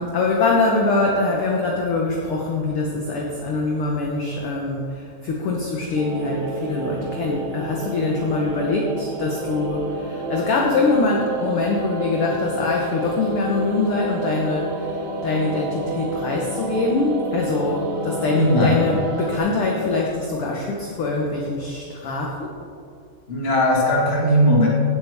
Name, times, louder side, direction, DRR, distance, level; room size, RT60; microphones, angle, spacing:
voice 1, 0.0-22.5, left 3 dB, 65° left, -1 dB, 1.5 m, -23 dB
sound 1, 6.0-19.4, right 2 dB, 75° right, 1.0 m, -30 dB
voice 2, 18.3-18.8 23.3-24.7, equal, 25° left, -4 dB, 1.8 m, -18 dB
17.0 x 7.9 x 3.5 m, 2.3 s
omnidirectional pair, 3.7 m